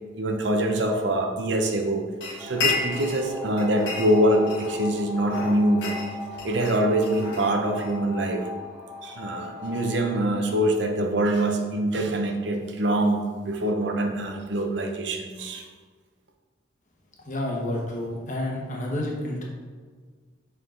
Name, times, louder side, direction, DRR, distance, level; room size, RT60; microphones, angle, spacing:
voice 1, 0.1-5.9 6.4-8.5 9.0-15.6, right 1 dB, 75° right, 3 dB, 0.8 m, -24 dB
sound 1, 2.2-3.3 3.6-4.9 5.3-7.9, left 4 dB, 65° left, 1.4 m, -31 dB
sound 2, 2.4-10.2, left 3 dB, 5° right, 1.6 m, -39 dB
voice 2, 17.2-19.4, left 1 dB, 40° left, -1 dB, 1.1 m, -29 dB
5.8 x 4.7 x 3.8 m, 1.5 s
head